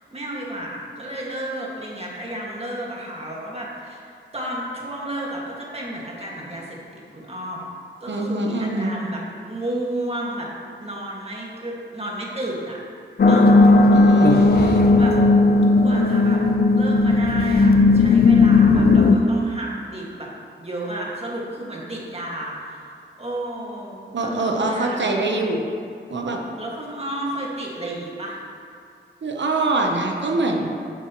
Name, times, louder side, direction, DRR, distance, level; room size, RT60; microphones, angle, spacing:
voice 1, 0.1-7.7 8.0-10.5 10.8-12.8 13.3-15.1 15.8-16.4 16.7-20.3 20.6-22.9 23.2-25.0 26.6-28.4, right 1 dB, 30° right, -4 dB, 1.9 m, -32 dB
voice 2, 8.1-9.0 13.9-15.0 24.1-25.6 26.1-26.4 29.2-30.7, right 2 dB, 65° right, 1 dB, 0.9 m, -24 dB
sound 1, 13.2-19.2, left 3 dB, 50° left, 0.5 m, -15 dB
9.8 x 7.2 x 3.0 m, 2.4 s
wide cardioid pair, 70°, 20 cm